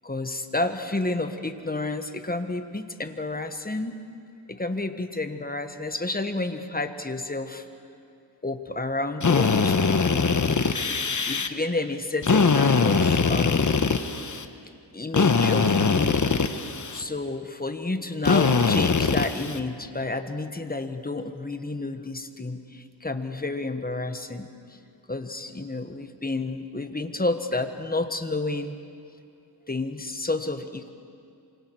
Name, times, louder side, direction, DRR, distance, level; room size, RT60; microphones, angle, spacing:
voice 1, 0.0-4.0 4.5-7.6 8.4-10.8 11.2-13.8 14.9-16.2 16.9-24.5 25.1-28.8 29.7-30.9, left 2 dB, 20° left, 8 dB, 1.5 m, -30 dB
Drill, 9.2-11.5 12.2-14.5 15.1-17.0 18.2-19.6, left 5 dB, 45° left, 1.2 m, -22 dB
27.0 x 25.5 x 4.8 m, 2.6 s
wide cardioid pair, 65°, 42 cm